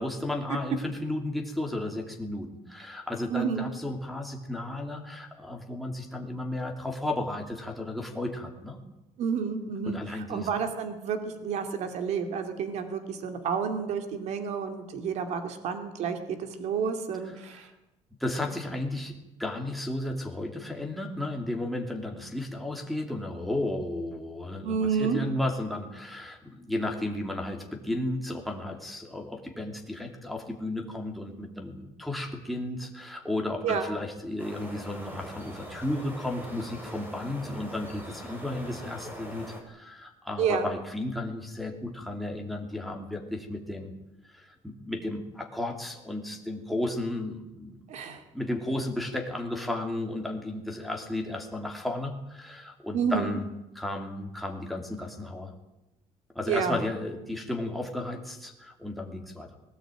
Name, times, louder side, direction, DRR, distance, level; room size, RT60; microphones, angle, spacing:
voice 1, 0.0-8.8 9.9-10.5 17.3-17.6 18.2-43.9 44.3-47.8 48.3-53.5 53.7-55.5 56.3-59.6, left 1 dB, ahead, 1 dB, 2.8 m, -34 dB
voice 2, 3.3-3.7 9.2-17.7 24.6-25.2 33.6-33.9 40.4-40.7 47.9-48.2 52.9-53.4 56.5-56.8, right 6 dB, 60° right, 7 dB, 2.5 m, -30 dB
sound 1, 34.4-39.6, right 1 dB, 15° right, 3.8 m, -42 dB
20.0 x 18.0 x 9.1 m, 0.94 s
cardioid pair, 180°, 13 cm